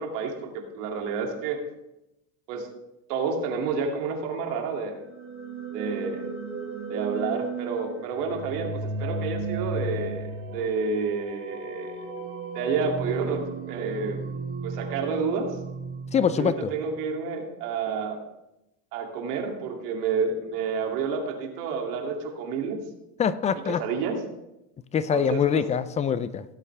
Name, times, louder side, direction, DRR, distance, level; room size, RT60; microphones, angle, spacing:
voice 1, 0.0-1.6 2.5-2.7 3.1-4.9 5.7-6.3 6.9-12.1 12.5-13.4 13.7-14.2 14.6-15.6 16.4-18.2 18.9-22.8 23.6-24.2 25.1-25.6, right 5 dB, 85° right, 2 dB, 2.6 m, -29 dB
sound 1, 4.9-16.9, right 3 dB, 25° right, 2.9 m, -35 dB
voice 2, 16.1-16.7 23.2-23.8 24.9-26.4, left 7 dB, 15° left, 14 dB, 0.3 m, -24 dB
17.0 x 8.4 x 3.3 m, 0.90 s
supercardioid pair, 120°, 46 cm